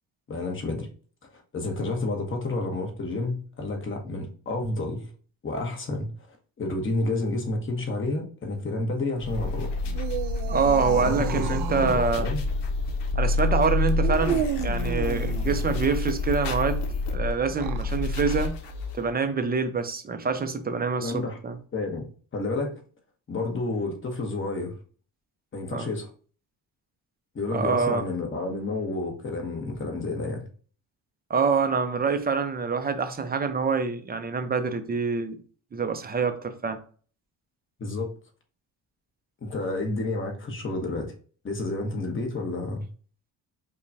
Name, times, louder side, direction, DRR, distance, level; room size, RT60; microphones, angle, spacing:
voice 1, 0.3-0.9 1.3-5.1 5.4-6.1 6.6-9.7 11.0-12.4 21.0-21.4 21.7-22.1 22.3-22.7 23.3-24.7 25.5-26.1 27.3-30.5 37.8-38.1 39.4-41.1 41.4-42.9, left 2 dB, 30° left, 1.0 m, -30 dB
sound 1, 9.2-19.1, left 2 dB, 80° left, 0.7 m, -28 dB
sound 2, 9.8-12.1 14.0-15.8 17.4-17.9, right 8 dB, 75° right, 0.6 m, -32 dB
voice 2, 10.5-12.3 13.2-16.8 17.1-18.6 18.9-21.6 25.7-25.9 27.5-28.1 31.3-35.4 35.7-36.8, right 5 dB, 25° right, 0.4 m, -26 dB
5.0 x 2.2 x 2.6 m
cardioid pair, 110°, 41 cm